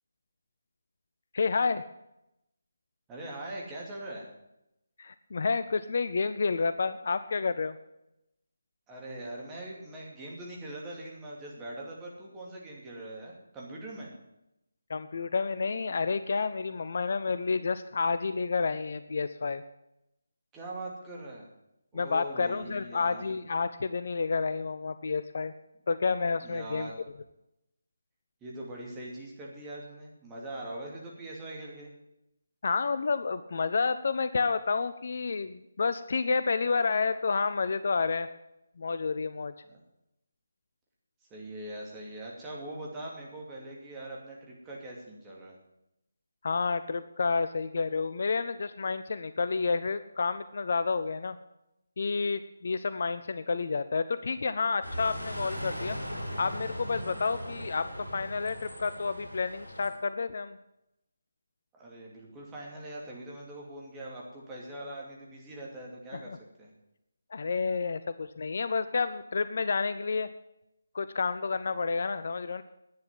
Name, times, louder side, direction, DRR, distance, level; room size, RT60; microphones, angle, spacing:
voice 1, 1.3-1.8 5.0-7.8 14.9-19.6 21.9-25.5 25.9-26.9 32.6-38.3 38.8-39.5 46.4-51.4 52.0-56.0 56.4-57.9 58.1-60.6 66.3-66.4 67.3-70.3 70.9-72.6, left 4 dB, 45° left, 12 dB, 0.6 m, -30 dB
voice 2, 3.1-4.3 8.9-14.1 20.5-21.5 21.9-23.3 26.4-26.9 28.4-31.9 39.7-39.8 41.3-45.6 57.0-57.4 61.7-66.7, right 1 dB, 10° right, -3 dB, 2.7 m, -42 dB
sound 1, 54.8-59.9, equal, 85° right, 6.7 m, -39 dB
10.5 x 9.2 x 9.3 m, 0.87 s
figure-of-eight pair, 150°, 0 cm